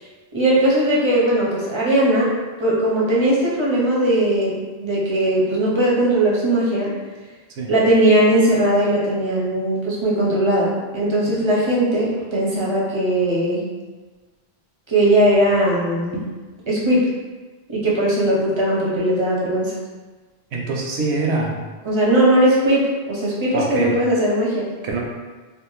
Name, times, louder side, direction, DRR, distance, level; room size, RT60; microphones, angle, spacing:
voice 1, 0.3-2.3 2.6-6.9 7.7-13.6 14.9-16.2 16.7-17.1 17.7-19.8 21.8-24.7, right 1 dB, 40° right, -6 dB, 0.4 m, -19 dB
voice 2, 20.5-21.6 23.5-23.9 24.8-25.0, right 3 dB, 85° right, -1 dB, 0.9 m, -23 dB
2.5 x 2.2 x 3.0 m, 1.3 s
omnidirectional pair, 1.1 m